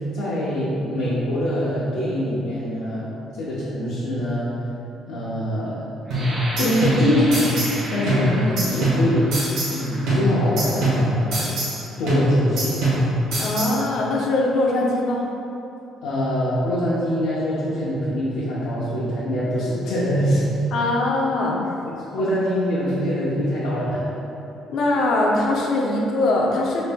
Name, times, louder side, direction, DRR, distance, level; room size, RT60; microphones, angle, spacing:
voice 1, 0.1-3.1 3.4-4.5 5.1-5.8 6.6-9.4 9.7-11.4 12.0-12.7 16.0-20.5 22.1-24.0, equal, 85° left, -10 dB, 0.8 m, -24 dB
sound 1, 6.1-11.7 12.4-12.6 13.0-13.5, right 1 dB, 15° right, 0.5 m, -36 dB
sound 2, 6.1-7.8 8.1-9.8 10.1-11.8 12.1-13.8, right 1 dB, 75° right, 1.4 m, -23 dB
voice 2, 13.4-15.2 20.7-21.6 24.7-26.8, left 2 dB, 55° left, -2 dB, 0.5 m, -21 dB
5.3 x 3.9 x 2.2 m, 2.9 s
cardioid pair, 165°, 0 cm